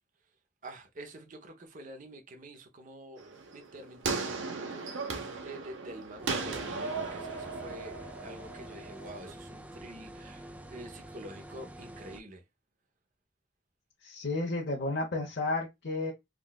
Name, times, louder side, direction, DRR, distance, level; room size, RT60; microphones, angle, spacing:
voice 1, 0.6-12.4, right 1 dB, 45° right, 0.7 m, -47 dB
sound 1, 3.2-9.3, right 4 dB, 85° right, 0.8 m, -37 dB
sound 2, 6.2-12.2, right 1 dB, 5° right, 0.4 m, -47 dB
voice 2, 14.0-16.1, left 2 dB, 65° left, 0.9 m, -32 dB
3.7 x 2.3 x 2.2 m
head